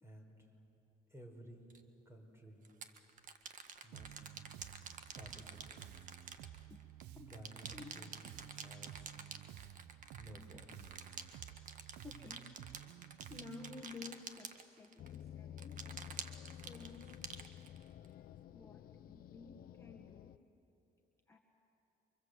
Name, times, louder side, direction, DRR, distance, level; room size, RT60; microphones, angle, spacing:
voice 1, 0.0-0.5 1.1-1.7 2.0-2.7 3.8-4.2 5.1-5.8 7.3-7.7 8.0-8.2 8.6-9.1 10.2-11.2, equal, 15° right, 3 dB, 4.9 m, -55 dB
sound 1, 1.7-1.8 2.6-7.0 7.3-15.2 15.6-18.1, right 6 dB, 50° right, 1.7 m, -49 dB
Bass guitar, 3.9-13.8, right 12 dB, 90° right, 0.9 m, -53 dB
voice 2, 12.0-12.5 13.3-15.8 16.5-17.5 18.5-20.4 21.3-21.4, left 4 dB, 15° left, -1 dB, 1.8 m, -53 dB
sound 2, 15.0-20.4, left 10 dB, 60° left, 0.8 m, -52 dB
29.5 x 24.5 x 8.2 m, 2.9 s
cardioid pair, 110°, 17 cm